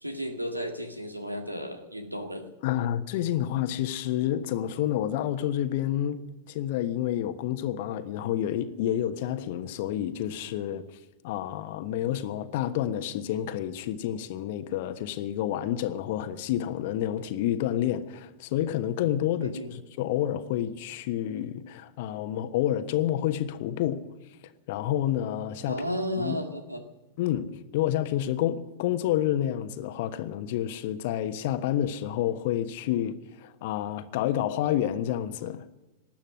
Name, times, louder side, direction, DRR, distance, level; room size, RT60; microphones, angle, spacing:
voice 1, 0.0-2.5 19.4-19.8 25.7-26.8, equal, 90° right, 1.8 m, -33 dB
voice 2, 2.6-10.8 11.2-24.0 24.7-25.8 26.2-26.4 27.2-35.6, left 11 dB, 50° left, 1.2 m, -29 dB
19.5 x 12.0 x 6.3 m
figure-of-eight pair, 95°, 0 cm